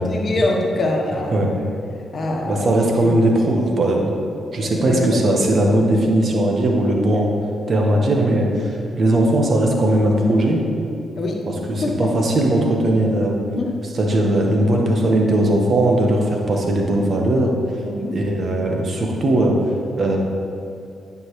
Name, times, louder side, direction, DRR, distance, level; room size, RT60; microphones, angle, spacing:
voice 1, 0.0-1.4 2.1-2.7 3.0-3.1 4.6-5.4 11.2-11.4 11.8-12.1 13.4-13.7 17.8-18.2, left 2 dB, 50° left, 1 dB, 1.1 m, -24 dB
voice 2, 2.4-4.2 4.5-7.3 7.7-10.6 11.5-13.4 13.9-17.5 18.1-19.5 20.0-20.2, right 1 dB, 55° right, 0 dB, 1.2 m, -18 dB
9.2 x 5.4 x 3.2 m, 2.5 s
supercardioid pair, 55°, 0 cm